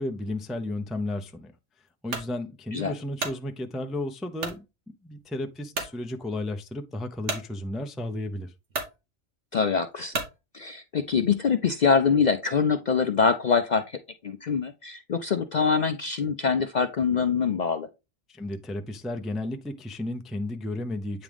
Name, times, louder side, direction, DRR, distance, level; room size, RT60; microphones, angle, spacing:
voice 1, 0.0-1.5 2.0-4.6 5.0-8.5 18.3-21.2, left 1 dB, ahead, 0.3 m, -33 dB
sound 1, 2.1-2.3 2.9-3.4 4.4-4.6 5.2-5.3 5.7-6.0 7.3-7.5 8.3-8.4 8.7-9.0 10.1-10.4, right 3 dB, 80° right, 1.6 m, -32 dB
voice 2, 9.5-10.1 10.5-13.8 14.2-17.9, left 5 dB, 55° left, 0.5 m, -24 dB
8.8 x 3.6 x 3.4 m
omnidirectional pair, 1.2 m